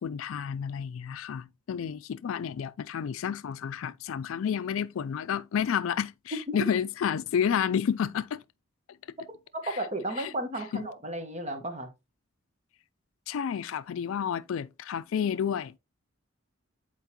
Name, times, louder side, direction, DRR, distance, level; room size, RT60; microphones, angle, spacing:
voice 1, 0.0-8.4 10.2-10.3 10.7-10.8 13.3-15.7, left 8 dB, 80° left, 0.3 m, -30 dB
voice 2, 9.7-11.9, right 1 dB, 35° right, 1.1 m, -34 dB
8.0 x 4.6 x 2.9 m
head